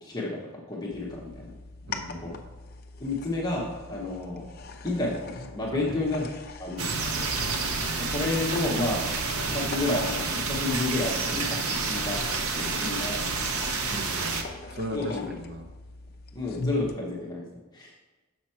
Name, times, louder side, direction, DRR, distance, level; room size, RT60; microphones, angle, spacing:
voice 1, 0.0-1.5 2.1-2.4 3.0-4.5 4.8-6.3 6.6-6.9 7.2-7.3 8.0-12.2 12.5-13.3 14.9-15.4 16.3-17.5 17.7-17.9, left 2 dB, 20° left, -3 dB, 0.8 m, -31 dB
sound 1, 0.9-17.0, left 3 dB, 45° left, 0.5 m, -41 dB
voice 2, 1.9-2.3 5.7-6.0 13.9-15.7, equal, 45° right, 4 dB, 0.8 m, -37 dB
sound 2, 6.8-14.4, right 4 dB, 75° right, 0.8 m, -29 dB
6.2 x 5.9 x 4.3 m, 1.2 s
head